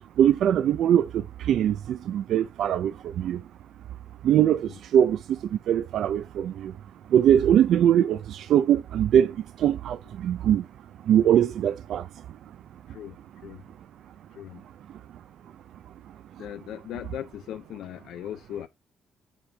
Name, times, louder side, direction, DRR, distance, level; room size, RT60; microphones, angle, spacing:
voice 1, 0.2-1.1 1.4-3.4 4.2-5.2 5.7-6.7 7.1-9.3 9.6-10.0 10.2-10.6 11.1-12.0, right 10 dB, 75° right, 0.4 m, -21 dB
voice 2, 12.9-13.7 14.3-14.6 16.4-18.7, left 11 dB, 80° left, 0.5 m, -38 dB
7.3 x 5.1 x 3.3 m
cardioid pair, 90°, 0 cm